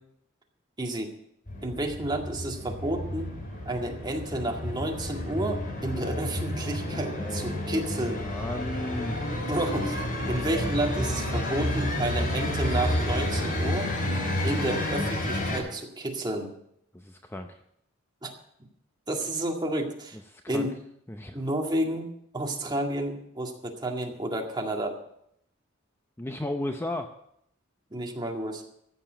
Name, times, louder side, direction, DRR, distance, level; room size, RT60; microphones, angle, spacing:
voice 1, 0.8-1.1 1.6-3.3 3.7-8.3 9.5-14.0 14.4-16.5 18.2-18.3 19.1-20.2 20.5-20.7 21.3-25.0 27.9-28.6, right 1 dB, 20° right, 1 dB, 2.0 m, -31 dB
sound 1, 1.5-15.6, left 1 dB, 45° left, 5.1 m, -30 dB
voice 2, 7.2-9.2 16.9-17.6 20.3-20.7 21.1-21.4 26.2-27.1, left 1 dB, 10° left, 6 dB, 0.6 m, -35 dB
15.0 x 6.9 x 7.8 m, 0.73 s
head